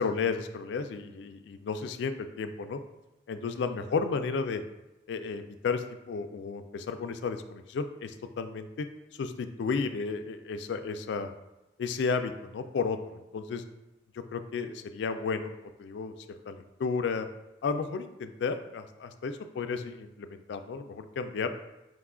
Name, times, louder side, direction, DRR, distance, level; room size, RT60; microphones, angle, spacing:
voice 1, 0.0-2.8 3.3-4.6 5.1-8.9 9.2-11.3 11.8-13.6 14.3-17.3 17.6-21.5, left 5 dB, 65° left, 8 dB, 0.3 m, -33 dB
4.8 x 2.3 x 3.6 m, 0.97 s
head